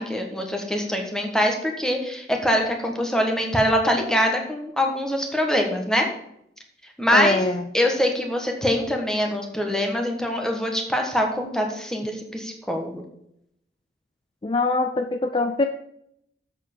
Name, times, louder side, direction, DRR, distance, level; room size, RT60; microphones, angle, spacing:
voice 1, 0.0-6.1 7.0-7.4 7.7-13.0, equal, 5° left, 2 dB, 1.4 m, -24 dB
voice 2, 7.1-7.7 14.4-15.6, left 2 dB, 25° left, 7 dB, 0.4 m, -23 dB
8.0 x 6.9 x 5.4 m, 0.76 s
head